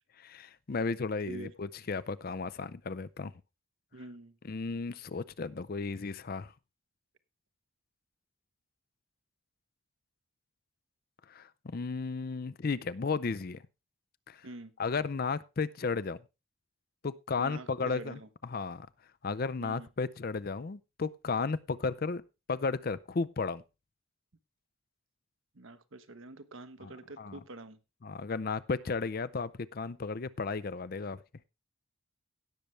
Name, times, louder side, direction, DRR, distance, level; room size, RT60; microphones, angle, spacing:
voice 1, 0.2-3.3 4.4-6.5 11.3-13.6 14.3-14.5 14.8-16.2 17.0-18.9 19.2-22.2 22.5-23.6 26.8-26.9 27.2-27.4 28.0-31.2, left 4 dB, 45° left, 16 dB, 0.5 m, -34 dB
voice 2, 3.9-4.4 14.4-14.7 17.4-18.3 19.6-19.9 25.5-27.8, right 2 dB, 70° right, 10 dB, 1.0 m, -46 dB
17.0 x 6.7 x 3.2 m, 0.27 s
head